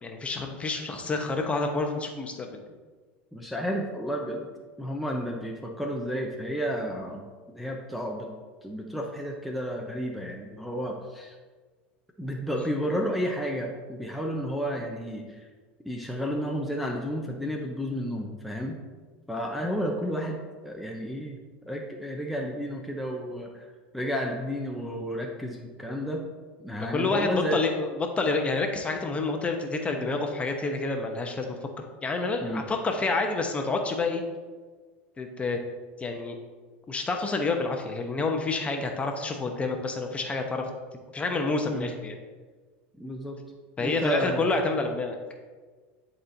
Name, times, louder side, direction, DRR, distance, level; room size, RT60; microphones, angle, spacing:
voice 1, 0.0-2.6 26.8-31.7 32.0-34.2 35.2-35.6 36.0-36.4 36.9-40.7 41.1-42.1 43.8-45.2, left 3 dB, 20° left, 3 dB, 0.9 m, -28 dB
voice 2, 3.3-4.5 4.8-7.3 7.5-8.3 8.6-11.3 12.2-15.5 15.8-18.8 19.3-21.4 21.6-23.7 23.9-26.2 26.6-27.6 32.4-32.6 41.7-41.9 43.0-43.4 43.8-44.5, equal, ahead, -1 dB, 0.7 m, -31 dB
10.5 x 4.3 x 2.7 m, 1.4 s
hypercardioid pair, 100°, 6 cm